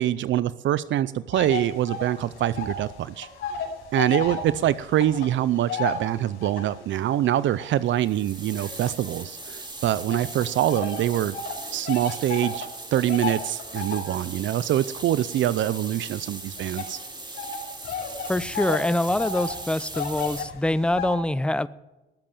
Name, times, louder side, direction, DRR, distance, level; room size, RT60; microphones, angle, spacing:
voice 1, 0.0-3.3 3.9-11.4 11.7-17.0, right 12 dB, 70° right, 16 dB, 0.6 m, -24 dB
sound 1, 1.3-2.9 3.1-6.8 7.4-9.5 10.1-21.1, left 5 dB, 75° left, 5.6 m, -34 dB
sound 2, 8.0-20.4, right 3 dB, 20° right, 3.2 m, -39 dB
voice 2, 18.3-21.7, left 1 dB, 5° left, 17 dB, 0.6 m, -25 dB
19.0 x 7.7 x 7.3 m, 1.0 s
cardioid pair, 90°, 20 cm